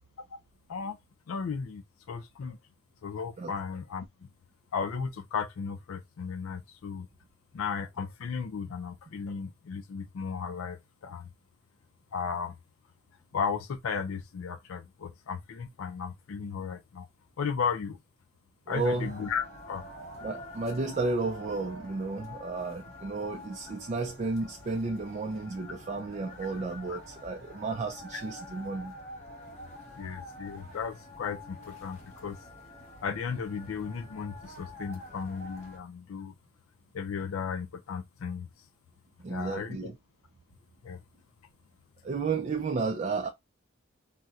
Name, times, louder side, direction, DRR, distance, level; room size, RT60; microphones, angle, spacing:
voice 1, 1.3-2.6 3.0-4.1 4.7-7.1 7.5-11.3 12.1-12.5 13.3-17.1 17.4-18.0 18.7-19.8 26.9-27.0 28.1-28.2 30.0-32.4 33.0-36.3 36.9-38.5 39.3-39.8 40.8-41.0, left 6 dB, 75° left, 0.4 m, -35 dB
sound 1, 18.7-35.8, left 1 dB, 35° left, 1.1 m, -47 dB
voice 2, 18.7-19.1 20.2-28.9 39.2-40.0 42.0-43.3, right 3 dB, 35° right, 0.3 m, -32 dB
4.1 x 2.1 x 2.3 m
head